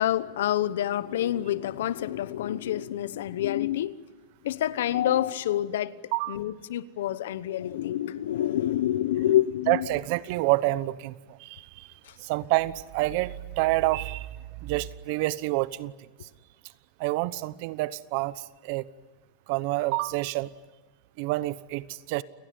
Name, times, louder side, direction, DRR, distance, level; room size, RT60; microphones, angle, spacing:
voice 1, 0.0-4.0 4.4-5.9 6.3-9.9, left 12 dB, 85° left, 1.0 m, -27 dB
voice 2, 9.7-11.9 12.2-14.3 14.6-15.9 17.0-18.8 19.5-20.5 21.2-22.2, right 19 dB, 60° right, 1.0 m, -28 dB
29.5 x 19.0 x 9.6 m
supercardioid pair, 135°, 0 cm